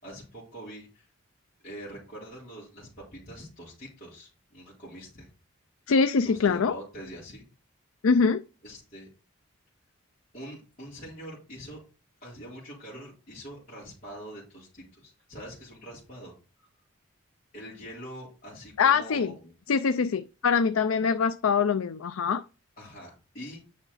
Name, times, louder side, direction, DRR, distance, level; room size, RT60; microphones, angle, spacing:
voice 1, 0.0-1.1 1.6-5.3 6.2-7.4 8.6-9.1 10.3-11.8 12.2-16.3 17.5-19.5 22.8-23.6, equal, 40° left, 4.0 m, -44 dB
voice 2, 5.9-6.8 8.0-8.4 18.8-19.3 19.7-22.4, left 5 dB, 80° left, 0.5 m, -23 dB
9.3 x 5.9 x 4.1 m
head